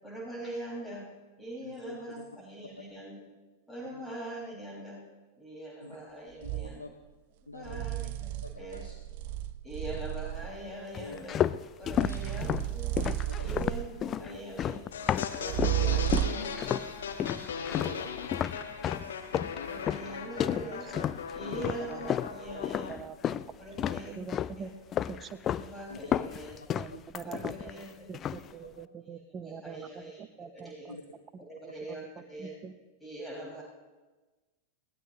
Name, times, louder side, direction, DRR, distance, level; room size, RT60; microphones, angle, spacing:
voice 1, 0.0-1.1 1.4-3.2 3.7-5.0 5.4-6.8 7.5-8.9 9.6-11.4 11.8-12.9 13.4-14.8 15.3-16.7 17.8-18.0 19.6-20.9 21.3-23.0 23.6-24.3 24.6-24.7 25.4-26.8 27.2-28.5 29.0-30.9 31.5-32.6 33.0-33.6, right 1 dB, 5° left, -4 dB, 5.6 m, -43 dB
voice 2, 1.6-2.3 3.9-4.0 5.8-6.0 6.4-6.9 7.5-7.9 8.4-8.9 11.0-11.2 12.0-12.2 13.0-13.5 14.2-14.4 16.2-16.4 17.1-18.1 18.8-19.4 21.4-21.7 22.5-22.7 23.8-23.9 25.9-26.0 26.9-27.1 27.4-27.6 28.6-28.8 30.9-31.0, left 3 dB, 80° left, 6 dB, 0.9 m, -46 dB
sound 1, 6.4-6.7 7.6-10.6 11.8-14.1 15.5-16.6, right 14 dB, 50° right, 0.5 m, -33 dB
sound 2, 10.9-15.8 16.1-16.9 17.2-23.5 23.8-24.6 24.9-25.7 25.9-27.8 28.1-28.5, left 10 dB, 30° left, 0.4 m, -32 dB
sound 3, 14.9-23.0, left 6 dB, 65° left, 1.3 m, -38 dB
voice 3, 20.4-21.2 21.9-22.2 22.5-23.4 24.0-24.7 25.1-25.4 26.7-31.0 31.3-31.4 31.9-32.0 32.4-32.7, right 6 dB, 25° right, 11 dB, 0.9 m, -44 dB
21.5 x 18.0 x 3.0 m, 1.2 s
figure-of-eight pair, 90°, 0 cm